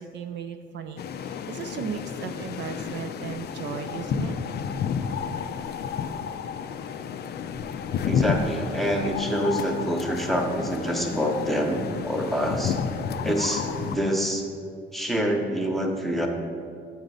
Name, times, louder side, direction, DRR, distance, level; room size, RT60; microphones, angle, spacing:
voice 1, 0.0-4.4, right 7 dB, 65° right, 7 dB, 0.4 m, -36 dB
sound 1, 1.0-14.0, left 7 dB, 55° left, 0.4 m, -31 dB
voice 2, 8.0-12.8 13.2-14.4 14.9-16.3, equal, ahead, 2 dB, 0.8 m, -26 dB
7.2 x 3.9 x 5.4 m, 2.3 s
cardioid pair, 90°, 20 cm